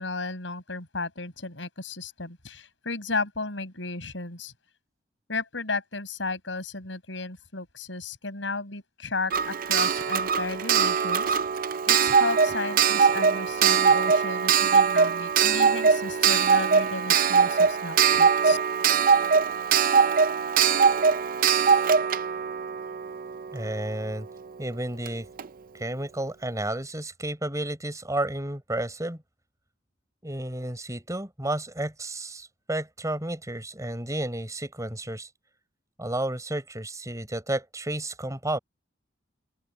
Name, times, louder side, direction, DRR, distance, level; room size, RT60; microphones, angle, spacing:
voice 1, 0.0-4.5 5.3-11.4 11.9-18.6, left 3 dB, 85° left, 5.5 m, -34 dB
Clock, 9.3-23.9 25.1-25.2 25.4-25.5, right 6 dB, 50° right, 0.6 m, -22 dB
voice 2, 23.5-24.3 24.6-25.3 25.7-29.2 30.2-35.3 36.0-38.6, right 1 dB, 20° right, 4.9 m, -32 dB
open air
head